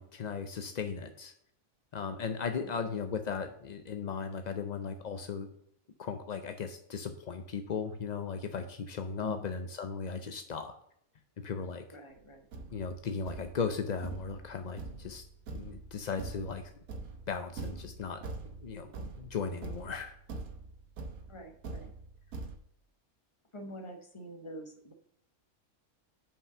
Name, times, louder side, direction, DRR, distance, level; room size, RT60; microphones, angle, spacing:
voice 1, 0.0-1.3 1.9-5.5 6.0-10.7 11.4-11.8 12.7-15.2 15.5-16.7 17.3-18.3 18.6-20.2, left 5 dB, 60° left, 7 dB, 0.4 m, -37 dB
voice 2, 11.9-12.5 21.3-21.9 23.5-24.9, equal, 25° left, 4 dB, 1.0 m, -46 dB
Thump thud, 12.1-12.2 12.5-22.6, right 3 dB, 75° right, 1.5 m, -44 dB
5.6 x 5.3 x 6.7 m, 0.71 s
omnidirectional pair, 1.5 m